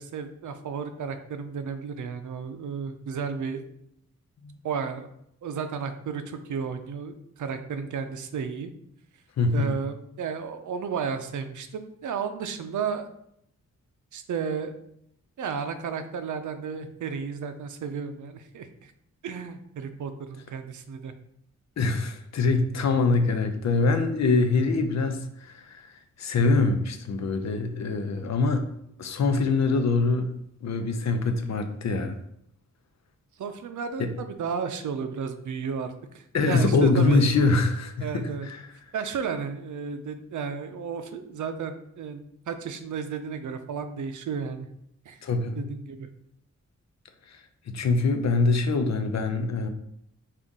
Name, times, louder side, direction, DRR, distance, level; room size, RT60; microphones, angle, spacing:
voice 1, 0.0-3.6 4.6-5.1 5.4-8.7 9.5-13.1 14.1-14.7 15.4-18.7 19.2-21.1 33.4-37.3 38.0-38.5 38.9-44.7 45.1-45.2 45.6-46.1, right 6 dB, 80° right, 8 dB, 0.5 m, -33 dB
voice 2, 9.4-9.7 21.8-28.7 29.0-30.3 30.6-32.2 34.0-34.1 36.3-38.7 45.2-45.6 47.3-47.4 47.7-49.7, left 3 dB, 65° left, 7 dB, 0.6 m, -24 dB
5.3 x 2.5 x 3.6 m, 0.74 s
wide cardioid pair, 100°, 29 cm